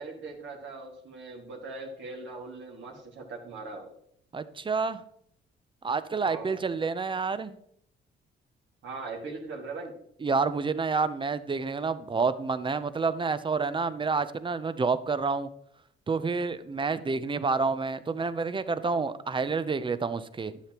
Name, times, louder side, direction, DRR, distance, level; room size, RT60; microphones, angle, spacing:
voice 1, 0.0-3.9 6.2-6.6 8.8-9.9, right 3 dB, 70° right, -1 dB, 2.0 m, -40 dB
voice 2, 4.3-5.0 5.8-7.6 10.2-15.5 16.1-20.6, right 4 dB, 25° right, 13 dB, 0.6 m, -29 dB
11.0 x 6.7 x 3.0 m, 0.68 s
cardioid pair, 90°, 20 cm